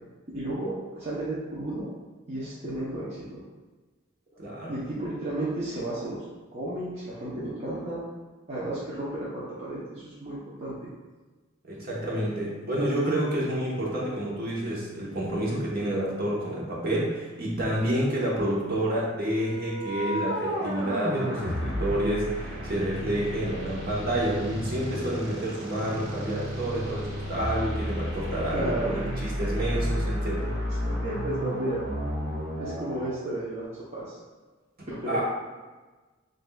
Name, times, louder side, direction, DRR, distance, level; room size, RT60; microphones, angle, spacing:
voice 1, 0.3-1.9 2.3-3.4 4.3-4.4 4.7-6.2 6.5-8.0 8.5-10.9 28.5-29.0 30.8-31.8 32.6-33.7 33.9-34.2 34.9-35.2, right 1 dB, 35° right, -9 dB, 0.8 m, -33 dB
voice 2, 4.4-4.7 11.6-30.5 35.1-35.2, right 1 dB, 50° right, -4 dB, 1.1 m, -29 dB
sound 1, 19.2-33.1, equal, 65° right, 1.5 m, -32 dB
7.4 x 2.7 x 2.3 m, 1.3 s
head